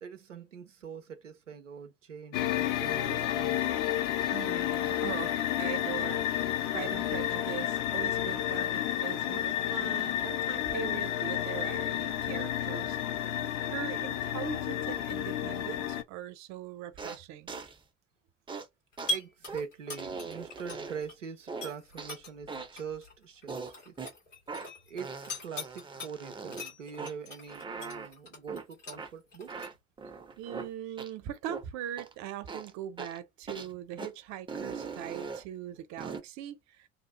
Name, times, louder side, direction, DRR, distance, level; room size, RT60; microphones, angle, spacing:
voice 1, 0.0-3.7 19.1-23.9 24.9-29.7, right 6 dB, 90° right, 0.5 m, -43 dB
sound 1, 2.3-16.0, left 12 dB, 50° left, 0.6 m, -31 dB
voice 2, 4.3-5.3 5.6-13.0 13.7-17.5 30.4-36.9, right 11 dB, 50° right, 0.7 m, -41 dB
sound 2, 17.0-17.2 17.5-17.8 18.5-18.7 19.0-19.1 19.5-19.6 20.0-21.1 21.5-22.2 22.5-22.8 23.5-24.1 24.5-24.7 25.0-26.7 27.0-27.1 27.5-28.1 28.5-28.6 29.0-29.1 29.5-30.7 31.0-31.1 31.5-31.6 32.0-32.1 32.5-32.7 33.0-33.2 33.5-33.7 34.0-34.1 34.5-35.4 36.0-36.2, right 4 dB, 15° right, 0.6 m, -40 dB
sound 3, 18.9-21.1 21.5-26.1 26.5-29.7, left 1 dB, 85° left, 1.6 m, -40 dB
2.8 x 2.3 x 2.8 m
figure-of-eight pair, 60°, 36 cm